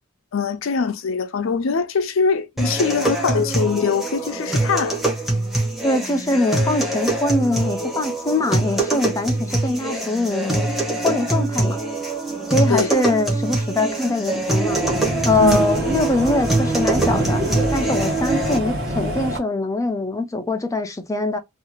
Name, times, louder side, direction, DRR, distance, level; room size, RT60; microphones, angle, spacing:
voice 1, 0.3-5.0 12.7-12.9 15.4-15.6, left 5 dB, 70° left, 0.5 m, -22 dB
sound 1, 2.6-18.6, right 2 dB, ahead, 0.8 m, -23 dB
voice 2, 5.8-10.7 11.0-11.8 12.5-14.8 15.2-17.4 17.7-21.4, left 2 dB, 15° left, 0.4 m, -22 dB
sound 2, 14.4-19.4, equal, 50° right, 1.2 m, -26 dB
2.7 x 2.4 x 2.8 m
head